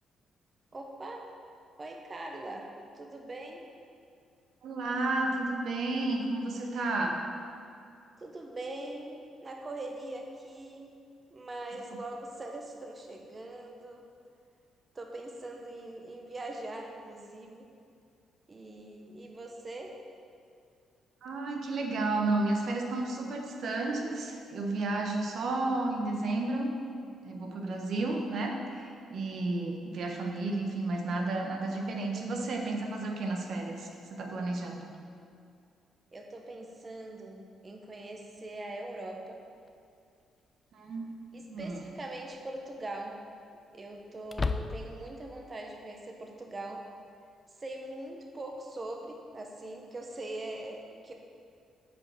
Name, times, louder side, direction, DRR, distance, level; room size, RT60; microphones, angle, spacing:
voice 1, 0.7-1.3 1.8-3.7 8.2-11.0 11.3-14.0 14.9-17.7 18.5-20.0 36.1-39.4 41.3-43.2 43.7-46.9 47.6-51.1, right 2 dB, 30° right, 2 dB, 1.0 m, -42 dB
voice 2, 4.6-7.2 21.2-26.8 27.2-34.9 40.7-41.1 41.5-41.8, right 2 dB, 60° right, 2 dB, 1.1 m, -32 dB
sound 1, 39.7-39.8 41.6-42.0 42.4-42.5 44.2-45.1, left 4 dB, 30° left, 0.5 m, -34 dB
8.4 x 5.2 x 7.6 m, 2.4 s
cardioid pair, 90°, 0 cm